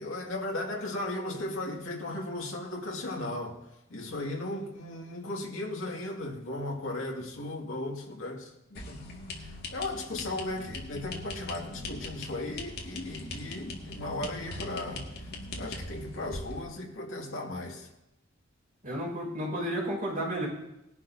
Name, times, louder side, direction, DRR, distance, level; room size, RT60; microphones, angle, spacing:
voice 1, 0.0-3.6 3.9-9.0 9.3-15.3 15.5-17.9, left 2 dB, 70° left, 2.3 m, -36 dB
sound 1, 8.7-16.6, left 2 dB, 55° left, 2.0 m, -41 dB
voice 2, 18.8-20.5, right 1 dB, 40° right, 5.7 m, -32 dB
20.0 x 11.0 x 2.8 m
head